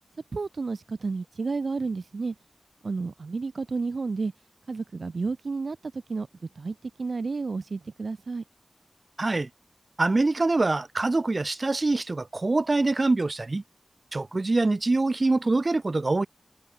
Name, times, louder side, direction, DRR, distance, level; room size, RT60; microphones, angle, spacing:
voice 1, 0.3-2.3 2.8-4.3 4.7-6.3 6.6-8.4, right 4 dB, 80° right, 1.3 m, -31 dB
voice 2, 9.2-9.5 10.0-13.6 14.1-16.3, right 2 dB, 55° right, 3.6 m, -24 dB
cardioid pair, 40°, 0 cm